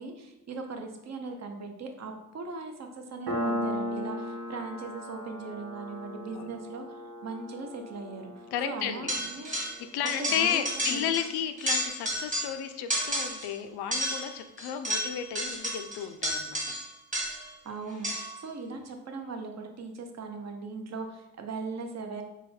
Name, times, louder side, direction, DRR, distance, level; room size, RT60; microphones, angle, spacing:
voice 1, 0.0-6.8 7.2-9.5 10.2-11.1 17.6-18.1 18.4-22.2, right 3 dB, 45° right, 4 dB, 0.7 m, -39 dB
Piano, 3.3-10.4, equal, 85° right, 1.3 m, -37 dB
voice 2, 8.5-9.2 9.9-16.8, left 9 dB, 85° left, 9 dB, 0.5 m, -33 dB
sound 1, 9.1-9.8 10.1-11.3 11.6-12.6 12.9-13.5 13.9-17.5 18.0-18.4, equal, 20° right, 1.5 m, -32 dB
4.0 x 2.3 x 4.1 m, 0.90 s
cardioid pair, 95°, 38 cm